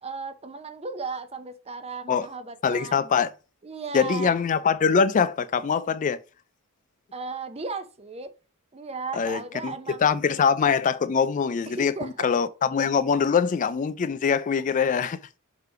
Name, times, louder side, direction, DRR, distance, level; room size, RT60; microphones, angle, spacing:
voice 1, 0.0-3.1 3.6-4.4 7.1-8.3 8.7-10.0 11.7-12.3, right 4 dB, 25° right, 0.7 m, -36 dB
voice 2, 2.6-3.3 3.9-6.2 9.1-9.7 10.0-15.2, left 6 dB, 35° left, 0.3 m, -23 dB
6.6 x 3.2 x 4.7 m
head